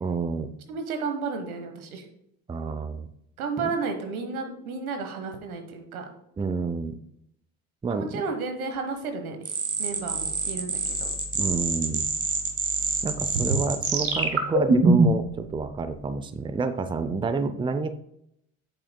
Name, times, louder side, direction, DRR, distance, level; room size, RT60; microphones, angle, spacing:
voice 1, 0.0-0.5 2.5-3.1 3.6-3.7 6.4-7.0 7.8-8.2 11.3-12.1 13.0-17.9, right 4 dB, 10° right, 11 dB, 0.5 m, -29 dB
voice 2, 0.7-2.1 3.4-6.0 7.9-9.5 9.8-11.1 13.3-13.4, right 4 dB, 85° right, 6 dB, 1.3 m, -32 dB
sound 1, 9.5-15.3, right 3 dB, 35° right, 1.8 m, -25 dB
8.6 x 7.5 x 2.2 m, 0.76 s
hypercardioid pair, 70°, 42 cm